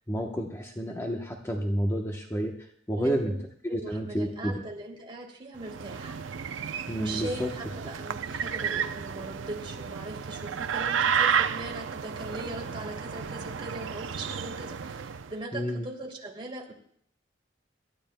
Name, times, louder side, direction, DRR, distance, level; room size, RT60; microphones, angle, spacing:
voice 1, 0.1-3.3 3.6-4.5 6.9-7.5 15.5-15.9, equal, 15° left, 2 dB, 0.9 m, -30 dB
voice 2, 3.0-3.4 3.7-6.2 7.0-16.7, right 2 dB, 30° right, 0 dB, 2.7 m, -39 dB
sound 1, 5.6-15.3, right 7 dB, 90° right, 0.5 m, -32 dB
26.5 x 13.0 x 2.2 m, 0.63 s
head